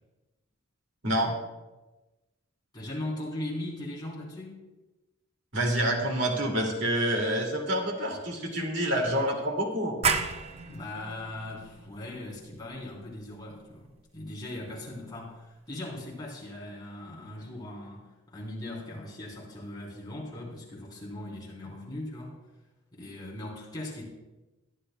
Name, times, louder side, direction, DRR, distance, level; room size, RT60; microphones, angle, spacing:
voice 1, 1.0-1.3 5.5-10.0, right 1 dB, 55° right, 0 dB, 2.3 m, -27 dB
voice 2, 2.7-4.6 10.6-22.4 22.9-24.0, left 1 dB, 20° left, -5 dB, 3.4 m, -39 dB
sound 1, 10.0-15.4, right 5 dB, 30° right, 0.5 m, -34 dB
21.5 x 10.5 x 2.2 m, 1.1 s
head